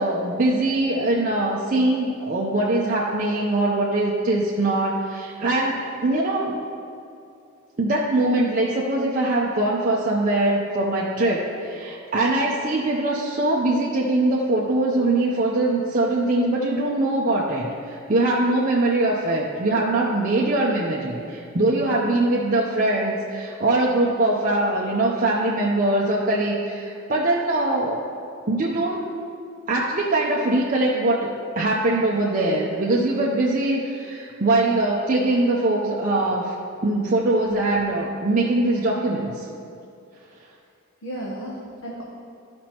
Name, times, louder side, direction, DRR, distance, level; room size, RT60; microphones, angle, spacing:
voice 1, 0.0-6.6 7.8-28.0 28.5-29.0 29.7-31.3 31.6-36.5 36.8-39.5, right 2 dB, 40° right, -4 dB, 0.6 m, -22 dB
voice 2, 41.0-42.0, right 1 dB, 65° left, -3 dB, 0.9 m, -34 dB
12.5 x 5.2 x 2.9 m, 2.5 s
head